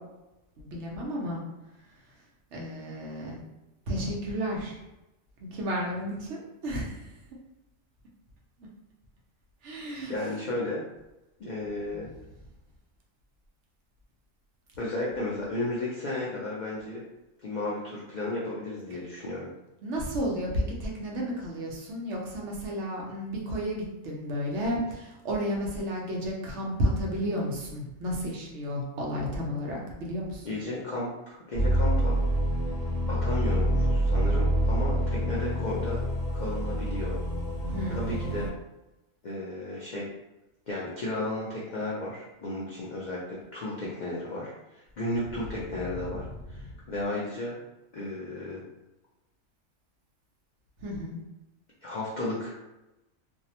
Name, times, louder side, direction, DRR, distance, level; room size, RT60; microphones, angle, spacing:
voice 1, 0.6-1.4 2.5-3.4 3.9-4.8 5.4-7.0 9.6-10.1 19.8-30.5 37.7-38.3 50.8-51.2, equal, 65° right, -2 dB, 0.9 m, -32 dB
voice 2, 10.1-10.8 11.4-12.1 14.8-17.0 17.4-19.5 30.4-32.2 33.1-36.0 36.3-37.2 37.9-38.5 39.2-40.1 40.7-47.6 47.9-48.6 51.8-52.6, left 2 dB, 85° left, -6 dB, 0.4 m, -34 dB
sound 1, 31.5-38.5, equal, 45° left, 0.8 m, -27 dB
2.6 x 2.0 x 2.8 m, 0.97 s
omnidirectional pair, 1.4 m